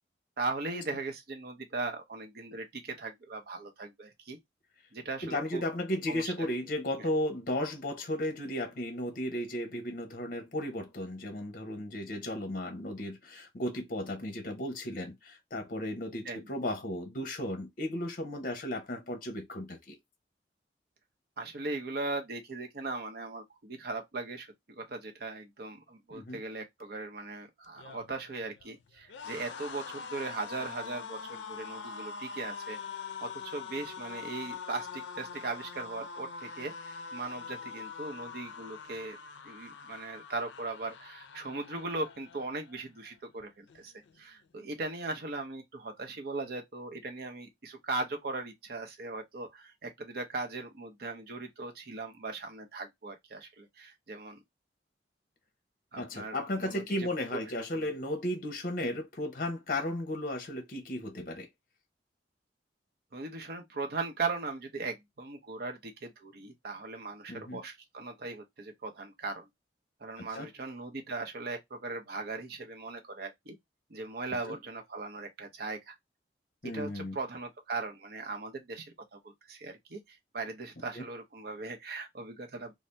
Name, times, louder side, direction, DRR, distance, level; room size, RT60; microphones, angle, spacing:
voice 1, 0.4-4.4 4.9-5.6 6.1-6.5 7.0-7.1 16.2-16.4 21.4-39.2 39.4-54.4 55.9-57.4 57.7-57.9 63.1-69.5 70.0-73.6 73.9-75.9 76.6-82.7, right 3 dB, 60° right, 0.6 m, -39 dB
voice 2, 5.2-20.0 26.1-26.4 56.0-61.5 67.3-67.6 70.2-70.5 74.5-74.6 76.6-77.2 80.9-81.0, left 1 dB, 50° left, 0.7 m, -35 dB
sound 1, 27.6-42.8 43.2-43.4 43.7-44.5, left 5 dB, 80° left, 0.4 m, -44 dB
2.6 x 2.0 x 3.2 m
head